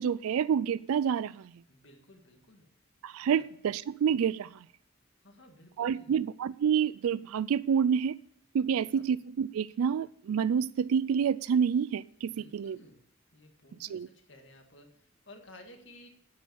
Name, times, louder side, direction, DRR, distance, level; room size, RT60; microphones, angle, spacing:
voice 1, 0.0-1.5 3.0-4.6 5.8-8.1 8.5-12.8 13.8-14.1, right 7 dB, 90° right, 0.3 m, -28 dB
voice 2, 1.7-2.7 3.2-3.5 5.2-6.2 8.6-9.1 12.3-13.0 13.3-16.1, left 1 dB, 60° left, 1.9 m, -55 dB
9.4 x 8.0 x 7.0 m
head